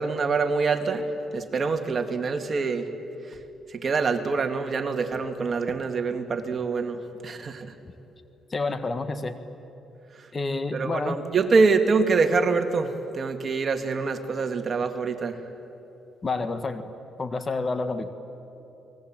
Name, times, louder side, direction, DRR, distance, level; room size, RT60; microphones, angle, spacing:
voice 1, 0.0-2.9 3.3-3.4 3.7-7.7 10.7-15.4, right 4 dB, 40° right, 6 dB, 2.2 m, -25 dB
voice 2, 8.5-9.3 10.3-11.2 16.2-16.9 17.2-18.1, left 3 dB, 30° left, 9 dB, 1.7 m, -29 dB
30.0 x 20.5 x 9.0 m, 3.0 s
cardioid pair, 90°, 0 cm